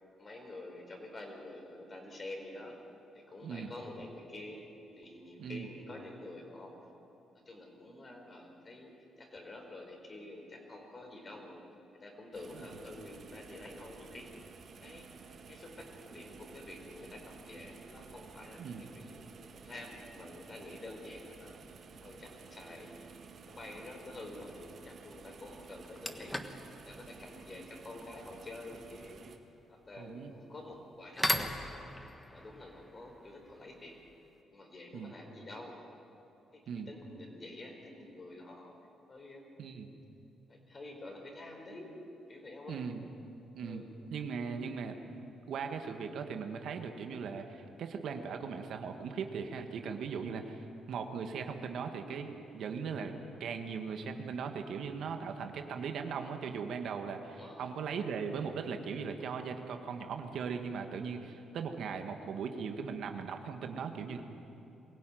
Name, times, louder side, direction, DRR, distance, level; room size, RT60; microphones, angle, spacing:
voice 1, 0.2-2.8 3.1-4.6 4.9-6.7 7.4-11.6 11.9-14.3 14.8-15.1 15.5-19.2 19.5-21.5 22.0-23.0 23.4-26.4 26.8-29.2 29.7-31.9 32.3-33.9 34.5-35.8 36.5-38.8 39.1-39.5 40.5-42.0 42.3-42.9 43.6-43.9 57.3-57.7, left 2 dB, 35° left, 2 dB, 4.9 m, -48 dB
sound 1, 12.3-29.4, right 5 dB, 55° right, 1.9 m, -53 dB
sound 2, 25.0-25.1 25.6-34.4, left 1 dB, 10° left, 1.4 m, -40 dB
voice 2, 30.0-30.3 34.9-35.1 36.7-36.9 39.6-39.9 42.7-43.0 43.5-43.8 44.1-50.6 50.9-64.2, right 6 dB, 70° right, 5 dB, 1.7 m, -39 dB
22.5 x 16.0 x 9.3 m, 2.8 s
cardioid pair, 90°, 0 cm